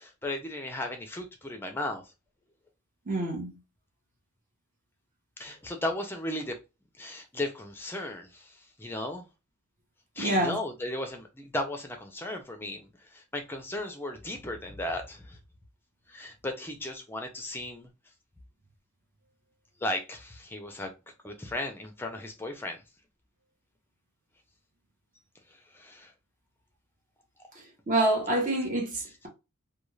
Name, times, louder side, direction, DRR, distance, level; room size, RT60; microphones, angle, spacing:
voice 1, 0.0-2.0 5.4-6.5 7.0-9.2 10.2-15.4 16.1-17.9 19.8-20.9 21.2-22.8 25.5-26.1, left 1 dB, 10° left, 0.5 m, -35 dB
voice 2, 3.1-3.5 10.2-10.6 27.9-29.3, right 1 dB, 35° right, 0.9 m, -27 dB
2.4 x 2.3 x 3.1 m
head